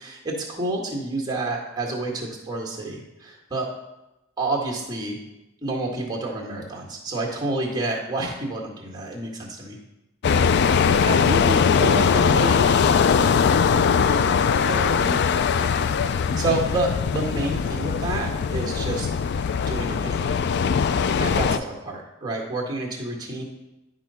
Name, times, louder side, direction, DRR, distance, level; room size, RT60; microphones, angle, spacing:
voice 1, 0.0-3.7 4.4-5.2 5.6-9.8 16.3-19.1 19.7-20.3 21.2-23.4, right 2 dB, 20° right, -1 dB, 1.8 m, -29 dB
sound 1, 10.2-21.6, left 6 dB, 55° left, 0.3 m, -21 dB
voice 2, 11.0-13.0 14.7-15.2, right 3 dB, 40° right, 4 dB, 0.4 m, -30 dB
11.0 x 3.9 x 5.6 m, 0.96 s
head